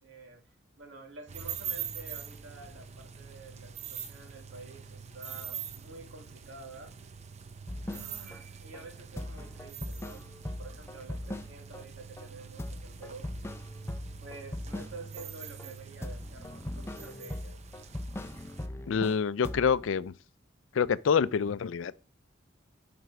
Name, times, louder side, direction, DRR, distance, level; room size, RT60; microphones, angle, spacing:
voice 1, 0.0-6.9 7.9-10.3 10.6-13.5 14.2-17.6, right 3 dB, 80° right, 2.3 m, -49 dB
sound 1, 1.3-18.7, right 8 dB, 35° right, 0.6 m, -44 dB
sound 2, 7.7-8.4 8.7-8.8 9.2-11.8 12.2-12.3 12.6-15.3 15.6-19.2 19.4-19.9, left 1 dB, 15° left, 0.5 m, -40 dB
voice 2, 18.9-20.1 20.7-22.0, left 6 dB, 85° left, 0.4 m, -27 dB
7.9 x 5.2 x 5.8 m
head